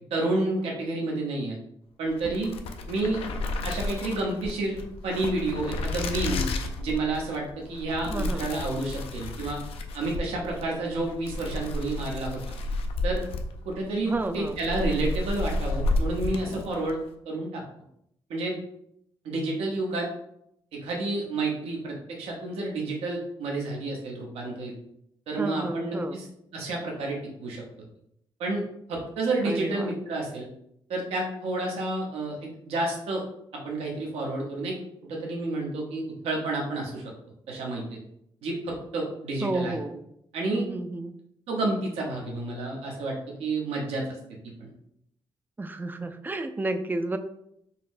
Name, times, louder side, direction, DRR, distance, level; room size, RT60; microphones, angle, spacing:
voice 1, 0.1-1.6 2.0-2.5 2.9-3.2 3.6-6.5 6.8-9.6 9.9-12.4 13.0-13.2 13.6-17.0 17.2-17.6 18.3-18.5 19.2-20.1 20.7-24.7 25.3-26.3 26.5-27.6 28.4-28.6 28.9-30.5 30.9-33.2 33.5-34.8 35.1-37.1 37.5-37.8 38.4-39.8 40.3-40.6 41.5-44.1 44.6-44.7, right 2 dB, 85° right, -1 dB, 0.7 m, -30 dB
sound 1, 2.1-17.0, left 2 dB, 75° left, 0.4 m, -32 dB
voice 2, 8.1-8.5 14.1-14.6 25.3-26.2 29.4-29.9 39.4-40.0 40.5-41.1 45.6-47.2, right 2 dB, 20° right, 8 dB, 0.3 m, -31 dB
3.9 x 2.0 x 2.5 m, 0.75 s
cardioid pair, 65°, 10 cm